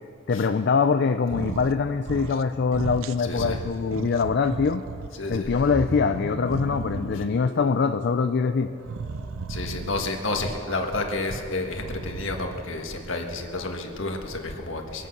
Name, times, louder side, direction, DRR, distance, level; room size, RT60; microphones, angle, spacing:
voice 1, 0.3-4.8 5.3-8.7, left 5 dB, 55° left, 8 dB, 0.4 m, -23 dB
sound 1, 1.2-1.8 2.0-2.5 2.7-5.1 5.5-7.4 8.8-10.2 11.6-12.7, right 4 dB, 85° right, 0.5 m, -35 dB
voice 2, 3.2-3.6 5.2-5.5 7.1-7.2 9.5-15.1, left 2 dB, 75° left, 3 dB, 1.6 m, -30 dB
sound 2, 5.4-9.6, equal, 20° left, 2.4 m, -38 dB
23.0 x 8.3 x 6.0 m, 2.7 s
head